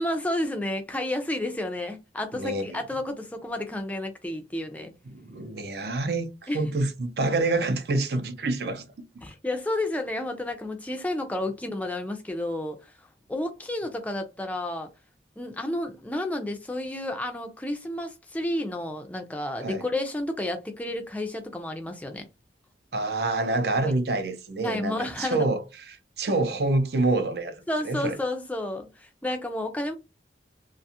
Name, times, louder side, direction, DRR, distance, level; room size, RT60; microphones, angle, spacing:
voice 1, 0.0-4.9 6.5-6.8 9.2-14.9 15.4-22.3 23.8-23.9 24.6-25.5 27.7-29.9, left 1 dB, 10° left, 0.4 m, -31 dB
voice 2, 2.3-2.7 5.1-8.9 19.6-19.8 22.9-28.2, right 2 dB, 60° right, 0.5 m, -27 dB
2.5 x 2.3 x 2.7 m
head